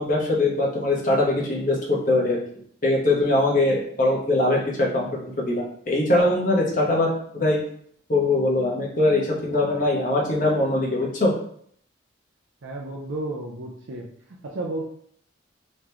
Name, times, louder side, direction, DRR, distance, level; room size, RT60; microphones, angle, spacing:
voice 1, 0.0-2.4 2.8-7.6 8.1-11.3, left 2 dB, 40° left, -3 dB, 1.1 m, -22 dB
voice 2, 12.6-14.8, right 2 dB, 75° right, -2 dB, 0.5 m, -33 dB
3.6 x 3.1 x 3.3 m, 0.63 s
head